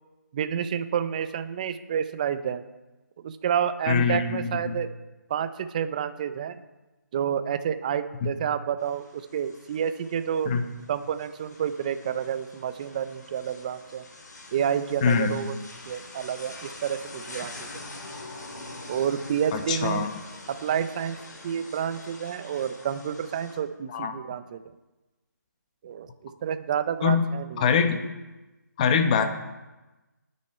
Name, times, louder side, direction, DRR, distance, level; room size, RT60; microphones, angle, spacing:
voice 1, 0.3-2.6 3.2-4.9 5.3-6.6 7.1-10.5 10.9-14.0 14.5-15.6 15.9-17.5 18.9-20.1 20.5-21.2 21.4-24.6 25.8-27.8, right 8 dB, 25° right, 11 dB, 0.7 m, -29 dB
voice 2, 3.9-4.7 8.2-8.3 10.4-10.6 15.0-15.4 19.5-20.1 23.9-24.1 27.0-27.2 27.6-28.0 28.8-29.2, left 6 dB, 25° left, 7 dB, 1.2 m, -23 dB
sound 1, 8.8-23.6, left 2 dB, 70° left, 4.1 m, -45 dB
19.0 x 9.6 x 4.5 m, 1.1 s
figure-of-eight pair, 165°, 10 cm